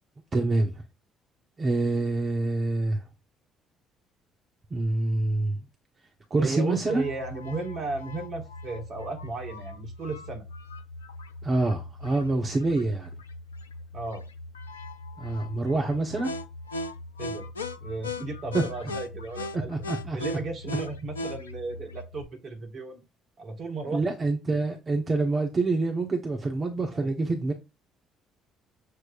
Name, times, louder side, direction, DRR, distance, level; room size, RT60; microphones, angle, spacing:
voice 1, 0.3-0.8 1.6-3.0 4.7-5.6 6.3-7.1 11.4-13.1 15.2-16.3 18.5-18.6 19.7-20.2 23.9-27.5, right 2 dB, 35° right, 1.1 m, -26 dB
voice 2, 6.4-10.5 13.9-14.2 17.2-17.5 17.8-19.7 20.1-23.0 23.4-24.0 26.9-27.1, right 3 dB, 50° right, 1.6 m, -35 dB
sound 1, 6.9-22.2, left 2 dB, 90° left, 0.4 m, -39 dB
6.8 x 3.0 x 2.5 m
hypercardioid pair, 50°, 0 cm